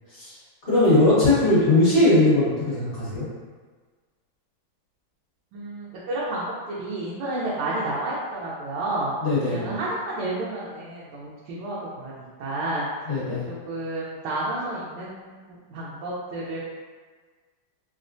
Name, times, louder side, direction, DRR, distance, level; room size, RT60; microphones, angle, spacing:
voice 1, 0.7-3.2 9.2-9.7 13.1-13.4, left 2 dB, 40° left, -11 dB, 1.3 m, -19 dB
voice 2, 5.5-9.2 9.5-12.9 13.4-16.6, right 2 dB, 85° right, -6 dB, 1.4 m, -31 dB
3.5 x 2.1 x 2.5 m, 1.4 s
omnidirectional pair, 2.3 m